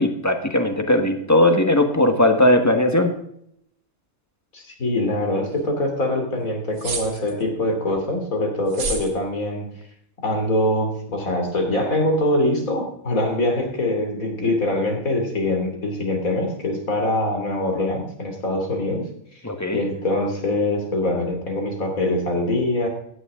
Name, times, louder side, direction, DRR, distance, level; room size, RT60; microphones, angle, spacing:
voice 1, 0.0-3.1 19.4-19.8, left 1 dB, 10° left, 6 dB, 1.3 m, -18 dB
voice 2, 4.5-9.7 10.2-19.0 19.7-22.9, left 1 dB, 70° left, 2 dB, 3.3 m, -23 dB
sound 1, 6.8-7.4 8.7-9.1, right 3 dB, 80° right, 2.0 m, -29 dB
15.5 x 10.0 x 3.7 m, 0.72 s
omnidirectional pair, 1.5 m